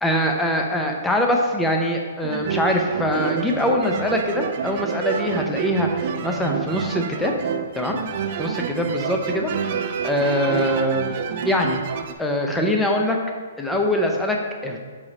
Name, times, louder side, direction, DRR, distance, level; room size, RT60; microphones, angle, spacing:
voice 1, 0.0-7.3 7.7-8.0 8.4-9.5 9.8-11.1 11.4-11.8 12.2-13.2 13.6-14.8, left 1 dB, 5° left, 1 dB, 0.5 m, -23 dB
sound 1, 2.2-12.1, right 7 dB, 45° right, 0.4 m, -28 dB
4.8 x 4.2 x 4.9 m, 1.5 s
hypercardioid pair, 155°, 0 cm